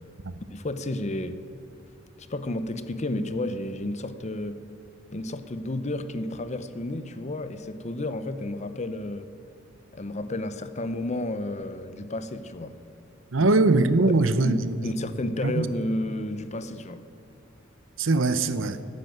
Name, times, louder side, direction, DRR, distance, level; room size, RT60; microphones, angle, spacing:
voice 1, 0.5-1.4 2.2-4.6 5.1-9.3 9.9-12.8 13.4-13.5 14.4-17.0, left 1 dB, 35° left, 0.7 m, -32 dB
voice 2, 13.3-14.9 15.4-15.7 18.0-18.8, right 3 dB, 75° right, 0.8 m, -22 dB
12.5 x 10.5 x 9.2 m
head